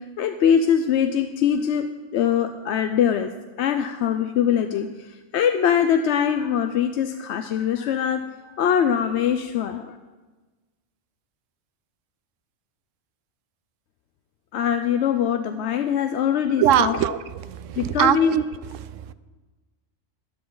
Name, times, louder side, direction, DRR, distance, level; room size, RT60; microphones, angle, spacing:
voice 1, 0.0-8.3 8.6-10.0 14.5-17.0 17.8-18.4, left 8 dB, 70° left, 8 dB, 0.8 m, -22 dB
voice 2, 16.6-18.4 18.7-19.1, right 11 dB, 85° right, 15 dB, 1.0 m, -22 dB
13.0 x 12.0 x 3.9 m, 1.3 s
omnidirectional pair, 1.3 m